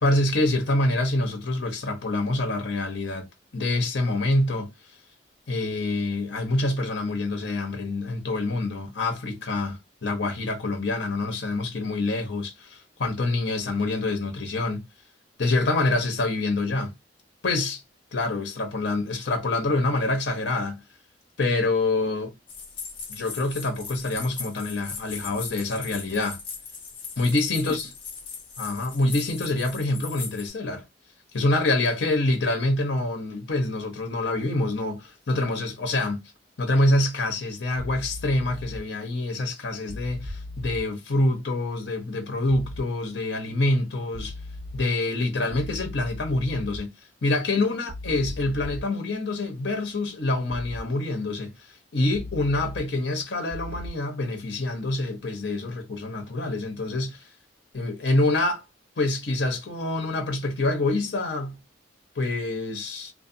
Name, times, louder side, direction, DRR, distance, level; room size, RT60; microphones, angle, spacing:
voice 1, 0.0-3.3 3.5-4.7 5.5-14.8 15.4-16.9 17.4-17.8 18.1-20.8 21.4-22.3 23.1-26.4 27.2-27.9 28.6-30.8 31.3-36.3 36.6-44.3 44.7-46.9 47.2-51.5 51.9-57.2 57.7-58.6 59.0-61.6 62.2-63.1, left 2 dB, 65° left, 0.8 m, -26 dB
sound 1, 22.5-30.5, left 5 dB, 30° left, 0.6 m, -39 dB
sound 2, 37.8-38.8 39.9-40.8 42.5-42.8 44.1-44.8 45.5-46.8 47.9-48.8 50.5-50.8 52.1-52.8 53.5-53.9, left 1 dB, 40° right, 0.4 m, -37 dB
2.6 x 2.1 x 2.6 m
head